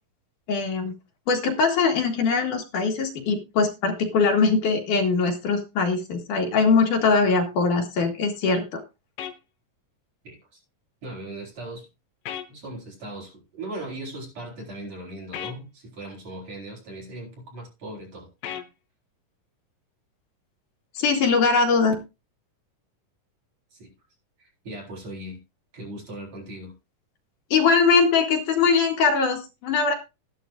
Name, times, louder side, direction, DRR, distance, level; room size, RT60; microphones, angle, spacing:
voice 1, 0.5-1.0 1.3-8.8 20.9-21.9 27.5-29.9, left 4 dB, 70° left, 3.2 m, -21 dB
sound 1, 9.2-9.4 12.3-12.5 15.3-15.6 18.4-18.7, left 10 dB, 85° left, 2.7 m, -34 dB
voice 2, 10.2-10.6 11.0-11.9 12.5-18.3 23.7-23.9 24.4-25.4 25.7-26.7, right 1 dB, 50° right, 5.6 m, -38 dB
13.5 x 11.5 x 2.5 m
omnidirectional pair, 3.9 m